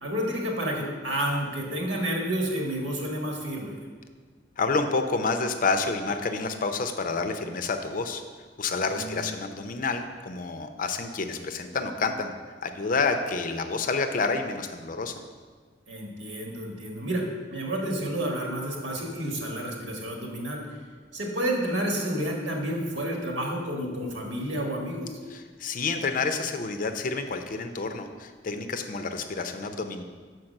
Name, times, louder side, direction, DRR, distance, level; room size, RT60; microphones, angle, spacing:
voice 1, 0.0-3.8 8.8-9.3 15.9-17.2 17.5-20.6 21.1-25.2, right 1 dB, 80° right, 0 dB, 1.4 m, -30 dB
voice 2, 4.6-8.2 8.6-12.3 12.6-15.1 25.3-30.0, left 4 dB, 45° left, 7 dB, 0.5 m, -29 dB
5.9 x 4.7 x 6.4 m, 1.5 s
head